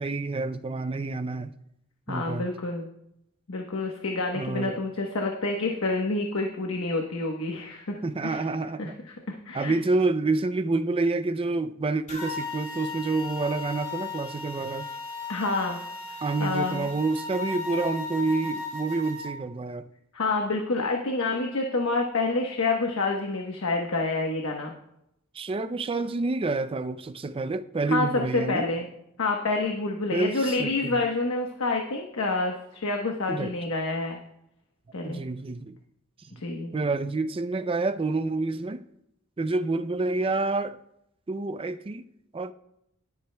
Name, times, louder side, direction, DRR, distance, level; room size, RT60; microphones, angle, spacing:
voice 1, 0.0-1.5 2.1-2.5 4.3-4.8 8.0-9.0 9.5-14.9 16.2-19.9 25.3-28.7 30.1-31.0 33.3-33.5 35.0-35.8 36.3-36.4 36.7-38.8 39.4-40.8 41.3-42.0 42.3-42.5, right 3 dB, 25° right, 0.4 m, -28 dB
voice 2, 2.1-2.9 3.5-7.8 8.2-8.5 8.8-9.7 15.3-15.8 16.4-16.9 20.1-24.7 27.9-28.1 28.3-28.9 29.2-34.2 34.9-35.2 36.4-36.7, left 3 dB, 90° left, 1.1 m, -28 dB
sound 1, 12.1-19.3, left 3 dB, 35° left, 3.2 m, -36 dB
20.5 x 8.3 x 2.3 m
head